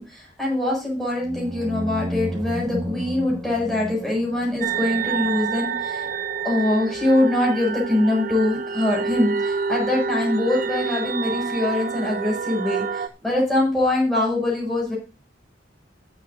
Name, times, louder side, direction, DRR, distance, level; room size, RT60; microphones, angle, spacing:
voice 1, 0.0-6.1 6.4-15.0, left 1 dB, ahead, -4 dB, 7.2 m, -23 dB
sound 1, 1.2-5.8, equal, 15° right, 1.6 m, -32 dB
sound 2, 4.6-13.1, right 5 dB, 45° right, 0.8 m, -28 dB
20.5 x 8.1 x 2.8 m, 0.30 s
head